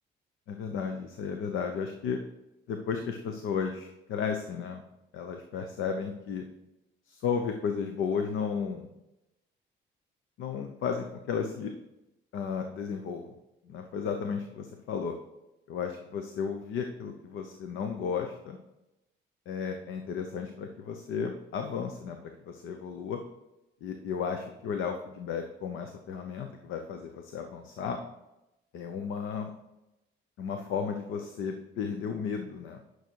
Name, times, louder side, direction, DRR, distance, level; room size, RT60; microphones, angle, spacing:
voice 1, 0.5-2.2 2.7-4.8 5.1-6.4 7.1-8.9 10.4-11.7 12.3-13.3 13.6-15.1 15.7-18.6 19.5-23.2 23.8-28.0 28.7-29.5 30.4-32.8, left 6 dB, 85° left, 5 dB, 0.8 m, -34 dB
9.4 x 6.3 x 4.6 m, 0.94 s
cardioid pair, 90°, 20 cm